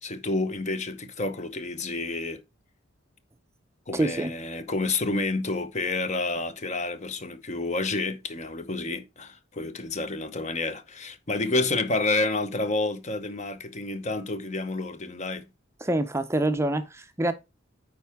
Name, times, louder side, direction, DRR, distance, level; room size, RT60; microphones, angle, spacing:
voice 1, 0.0-2.4 3.9-15.4, left 3 dB, 35° left, 0.8 m, -29 dB
voice 2, 3.9-4.3 15.8-17.3, right 1 dB, 15° right, 0.5 m, -26 dB
8.9 x 4.7 x 3.5 m
head